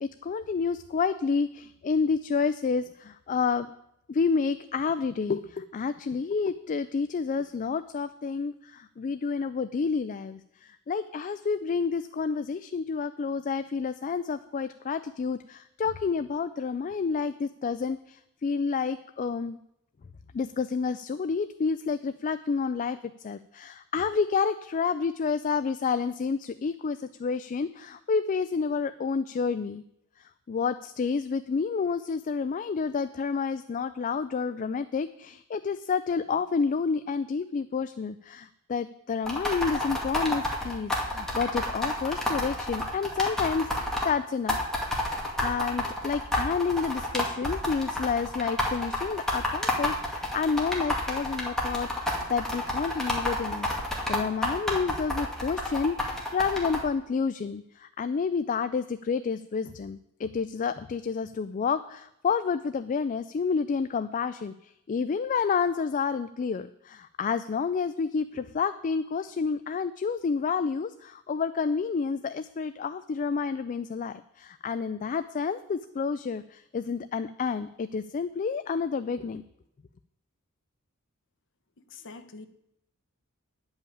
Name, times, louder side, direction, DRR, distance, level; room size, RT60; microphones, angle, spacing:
voice 1, 0.0-3.7 4.1-19.6 20.3-29.8 30.2-44.6 45.4-53.7 54.1-79.4, left 5 dB, 35° left, 12 dB, 0.3 m, -29 dB
sound 1, 39.3-44.1 44.5-56.8, left 1 dB, ahead, 2.2 m, -29 dB
voice 2, 81.8-82.5, left 3 dB, 60° left, 9 dB, 1.0 m, -45 dB
10.0 x 5.6 x 8.6 m, 0.80 s
head